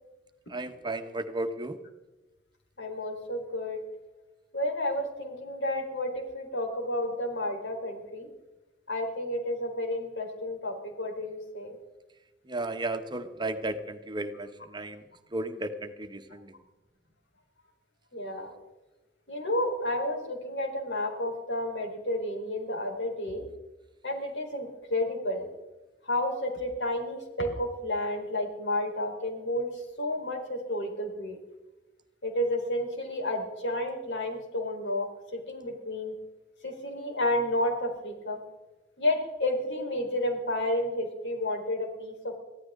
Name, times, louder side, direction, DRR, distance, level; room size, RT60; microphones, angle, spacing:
voice 1, 0.5-1.8 12.5-15.0 15.3-16.5, right 2 dB, 25° right, 8 dB, 1.2 m, -34 dB
voice 2, 2.8-3.8 4.5-8.3 8.9-11.8 18.1-18.5 19.3-23.4 24.0-25.5 26.0-31.4 32.2-36.1 36.6-38.4 39.0-42.4, left 1 dB, 85° left, 2 dB, 4.4 m, -31 dB
23.5 x 15.5 x 3.8 m, 1.1 s
head